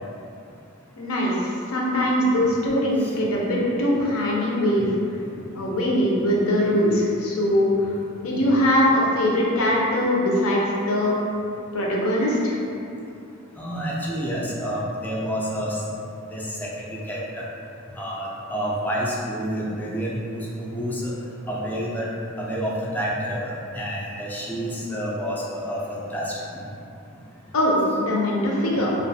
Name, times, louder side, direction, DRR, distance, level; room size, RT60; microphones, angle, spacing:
voice 1, 1.0-4.9 5.5-7.9 8.2-11.2 11.7-12.6 27.5-29.0, left 1 dB, 75° left, -3 dB, 0.5 m, -22 dB
voice 2, 13.6-15.8 16.3-17.5 18.0-21.1 21.5-22.1 22.4-26.3, equal, 10° left, -5 dB, 0.3 m, -29 dB
2.4 x 2.3 x 2.6 m, 2.6 s
head